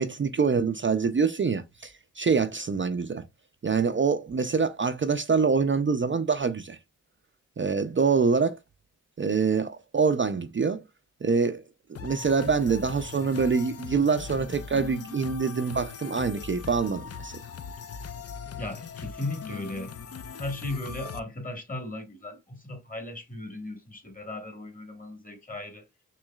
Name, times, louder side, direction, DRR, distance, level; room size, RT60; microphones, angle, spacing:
voice 1, 0.0-3.2 3.6-6.8 7.6-8.6 9.2-10.8 11.2-11.6 11.9-17.4, right 5 dB, 40° right, 0.5 m, -25 dB
sound 1, 11.9-21.2, left 6 dB, 50° left, 0.5 m, -40 dB
voice 2, 18.6-20.0 20.4-25.8, left 2 dB, 25° left, 1.6 m, -36 dB
6.1 x 3.1 x 2.3 m
wide cardioid pair, 75°, 32 cm